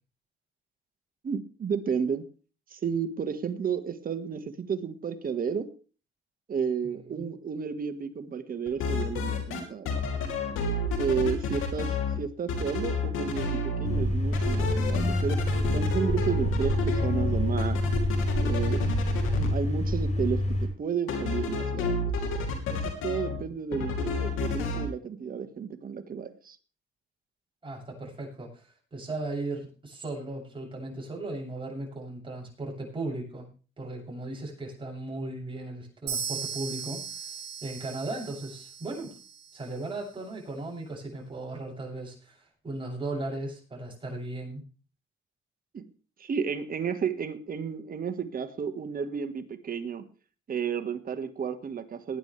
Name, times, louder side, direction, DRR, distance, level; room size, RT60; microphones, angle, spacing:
voice 1, 1.2-2.3 2.7-5.7 6.5-9.9 11.0-15.4 15.7-17.8 18.4-18.9 19.4-22.0 22.7-26.6 45.7-45.9 46.2-50.0 50.5-52.2, right 6 dB, 45° right, 9 dB, 1.6 m, -32 dB
voice 2, 6.8-7.3 27.6-33.5 33.8-39.1 39.5-44.7, right 2 dB, 25° right, -2 dB, 7.6 m, -37 dB
sound 1, 8.7-9.6 9.9-12.2 12.5-14.0 14.3-19.5 21.1-23.4 23.7-24.9, left 3 dB, 85° left, 3.0 m, -30 dB
sound 2, 13.8-20.7, left 1 dB, 35° left, 7.3 m, -27 dB
sound 3, 36.1-39.8, right 6 dB, 65° right, 4.8 m, -38 dB
19.5 x 10.5 x 3.3 m, 0.36 s
cardioid pair, 90°, 20 cm